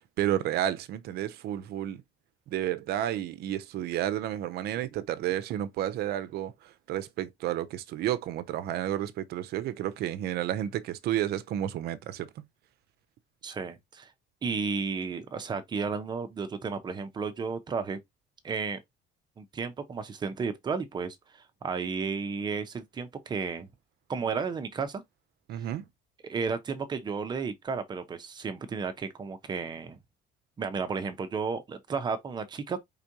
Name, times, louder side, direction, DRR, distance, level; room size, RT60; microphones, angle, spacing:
voice 1, 0.2-2.0 2.5-12.4 25.5-25.8, right 12 dB, 55° right, 0.6 m, -31 dB
voice 2, 13.4-14.1 14.4-18.0 18.4-18.8 19.4-23.7 24.1-25.0 26.2-30.0 30.6-32.8, right 5 dB, 20° right, 0.7 m, -33 dB
5.0 x 3.6 x 2.8 m
cardioid pair, 175°, 20 cm